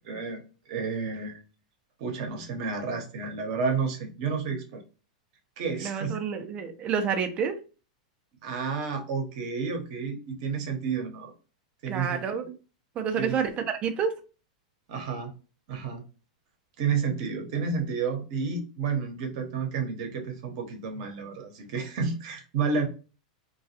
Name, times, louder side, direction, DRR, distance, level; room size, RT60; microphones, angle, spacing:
voice 1, 0.0-0.4 0.7-1.4 2.0-4.8 5.6-6.2 8.4-11.3 11.8-12.2 13.2-13.4 14.9-15.3 15.7-16.0 16.8-22.9, right 5 dB, 60° right, 4 dB, 0.9 m, -31 dB
voice 2, 5.8-7.6 11.9-12.5 13.0-13.5 13.8-14.2, right 6 dB, 30° right, 6 dB, 0.5 m, -28 dB
2.3 x 2.3 x 2.7 m, 0.34 s
hypercardioid pair, 120°, 4 cm